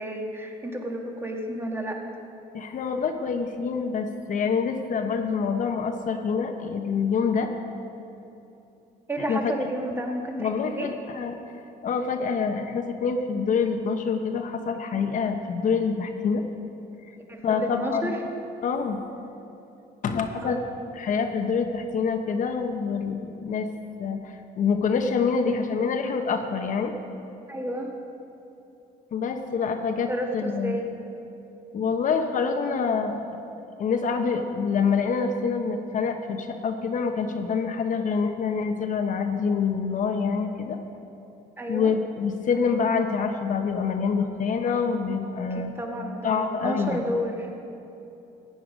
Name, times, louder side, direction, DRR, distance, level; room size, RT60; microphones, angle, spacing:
voice 1, 0.0-2.1 9.1-10.9 17.3-18.2 20.4-20.6 27.5-27.9 30.1-30.9 41.6-41.9 45.5-47.5, equal, 15° right, 1 dB, 1.7 m, -31 dB
voice 2, 2.5-7.5 9.3-9.5 10.4-11.4 11.8-16.4 17.4-18.1 18.6-19.0 20.0-20.6 20.9-23.7 24.0-26.9 29.1-30.8 31.7-33.2 33.8-40.8 41.7-45.7 46.2-47.2, left 5 dB, 50° left, 5 dB, 1.0 m, -26 dB
15.0 x 9.5 x 5.2 m, 3.0 s
cardioid pair, 110°, 17 cm